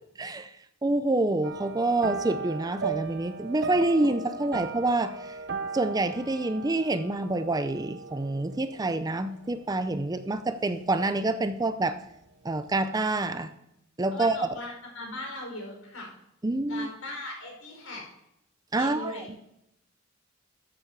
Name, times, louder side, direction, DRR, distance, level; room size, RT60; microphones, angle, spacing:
voice 1, 0.2-0.5 0.8-5.4 5.7-12.0 12.4-13.5 14.0-14.4 16.4-16.9 18.7-19.2, right 2 dB, 20° right, 11 dB, 0.5 m, -27 dB
sound 1, 1.4-11.0 11.3-11.7 12.0-12.1, right 4 dB, 55° right, 0.8 m, -38 dB
voice 2, 14.1-16.1 16.7-18.0 18.8-19.3, left 1 dB, 80° left, 0 dB, 5.0 m, -39 dB
13.5 x 7.3 x 4.6 m, 0.81 s
head